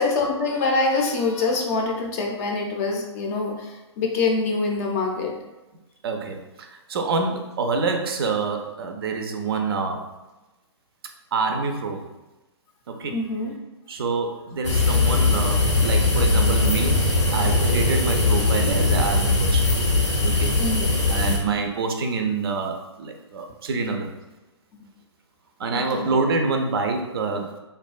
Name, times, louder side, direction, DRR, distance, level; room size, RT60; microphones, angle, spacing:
voice 1, 0.0-5.3 13.1-13.5 20.6-20.9 25.7-26.1, left 3 dB, 30° left, 1 dB, 0.4 m, -25 dB
voice 2, 6.0-10.0 11.3-12.1 12.9-13.1 13.9-17.0 17.3-19.7 20.2-20.5 21.1-24.1 25.6-27.5, right 4 dB, 55° right, 4 dB, 0.4 m, -26 dB
sound 1, 14.6-21.4, left 3 dB, 85° left, 0.7 m, -20 dB
2.4 x 2.2 x 2.3 m, 1.0 s
figure-of-eight pair, 125°, 15 cm